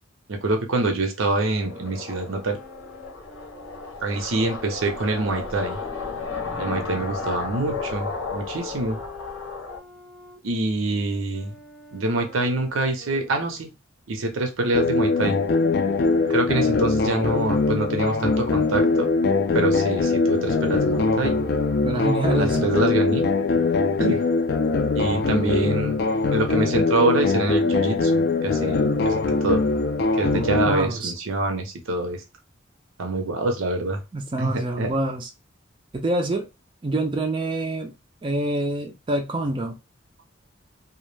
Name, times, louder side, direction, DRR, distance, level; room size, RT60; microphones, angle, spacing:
voice 1, 0.3-2.6 4.0-5.8 6.6-9.0 10.4-11.5 11.9-13.7 14.1-15.4 16.3-19.2 19.5-21.4 22.4-23.2 24.0-24.2 25.0-26.0 26.3-29.6 30.2-32.2 33.0-34.0 34.4-34.9, right 2 dB, 85° right, 0.6 m, -25 dB
sound 1, 1.5-9.8, left 4 dB, 80° left, 0.8 m, -34 dB
sound 2, 1.6-7.4 8.1-13.7, left 5 dB, 5° left, 0.9 m, -45 dB
sound 3, 14.7-30.7, left 3 dB, 55° left, 0.3 m, -22 dB
voice 2, 21.8-22.7 30.3-31.1 34.1-35.3 35.9-36.5 36.8-37.9 38.2-39.8, right 1 dB, 25° right, 0.3 m, -26 dB
2.2 x 2.1 x 3.1 m
head